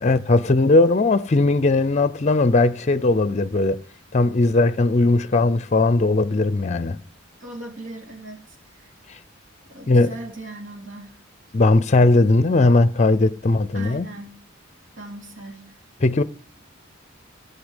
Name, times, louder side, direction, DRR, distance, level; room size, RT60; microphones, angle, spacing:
voice 1, 0.0-3.8 4.1-7.0 9.9-10.1 11.5-14.1 16.0-16.2, left 2 dB, 35° left, 0.5 m, -18 dB
voice 2, 7.4-8.4 9.7-11.1 13.7-14.4 15.0-15.7, right 2 dB, 80° right, 3.1 m, -38 dB
15.5 x 5.5 x 8.1 m
head